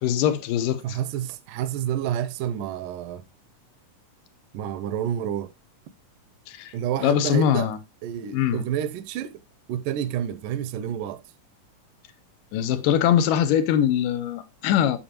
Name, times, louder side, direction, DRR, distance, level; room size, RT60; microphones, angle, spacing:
voice 1, 0.0-1.0 6.5-6.7 7.0-7.8 8.3-8.6 12.5-15.0, left 10 dB, 80° left, 2.4 m, -22 dB
voice 2, 0.8-3.2 4.5-5.5 6.7-7.7 8.0-9.4 9.7-11.2, right 10 dB, 80° right, 2.2 m, -29 dB
8.9 x 7.0 x 2.9 m
omnidirectional pair, 3.8 m